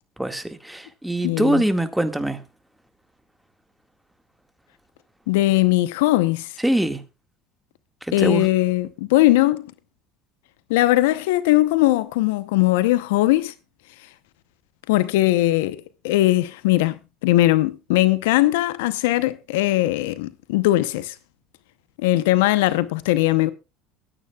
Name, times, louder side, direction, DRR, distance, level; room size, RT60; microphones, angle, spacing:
voice 1, 0.2-2.4 6.6-7.0 8.0-8.5, right 1 dB, 5° right, 1.9 m, -23 dB
voice 2, 1.2-1.6 5.3-6.5 8.1-9.7 10.7-13.5 14.9-15.8 16.0-21.1 22.0-23.5, left 17 dB, 75° left, 0.8 m, -19 dB
22.5 x 9.9 x 2.3 m
hypercardioid pair, 75°, 0 cm